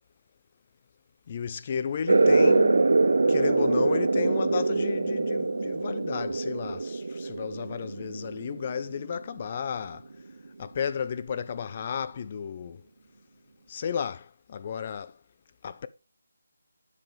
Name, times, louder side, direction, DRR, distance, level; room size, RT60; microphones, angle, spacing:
voice 1, 1.3-10.0 10.6-12.8 13.7-15.1 15.6-15.9, left 7 dB, 20° left, 0.3 m, -33 dB
sound 1, 2.1-9.2, right 3 dB, 55° right, 0.5 m, -24 dB
8.1 x 7.3 x 3.4 m
figure-of-eight pair, 180°, 0 cm